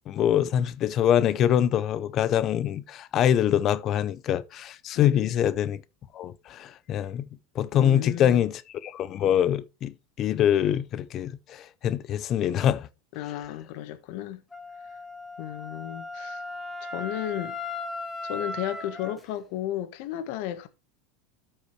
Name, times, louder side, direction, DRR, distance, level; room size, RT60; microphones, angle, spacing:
voice 1, 0.1-5.8 6.1-7.3 7.5-12.9, left 10 dB, 35° left, 0.6 m, -24 dB
voice 2, 4.9-5.3 7.7-8.4 13.1-14.4 15.4-16.4 16.8-17.6 18.2-20.7, left 12 dB, 60° left, 1.3 m, -34 dB
Wind instrument woodwind instrument, 14.5-19.2, left 2 dB, 10° left, 1.3 m, -37 dB
13.0 x 5.6 x 3.2 m
supercardioid pair, 145°, 0 cm